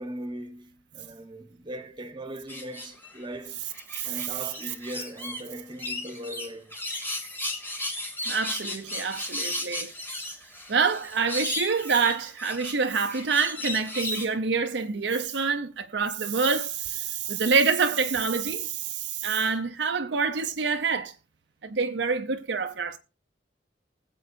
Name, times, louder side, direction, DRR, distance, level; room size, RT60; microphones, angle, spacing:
voice 1, 0.0-3.6 4.0-6.7, right 1 dB, 25° right, 1.2 m, -39 dB
sound 1, 2.5-3.2 3.7-5.4 5.8-14.3, left 1 dB, 10° left, 2.3 m, -35 dB
voice 2, 4.0-4.4 8.2-9.9 10.7-21.1 21.6-23.0, right 5 dB, 70° right, 0.7 m, -27 dB
20.0 x 7.8 x 2.6 m
head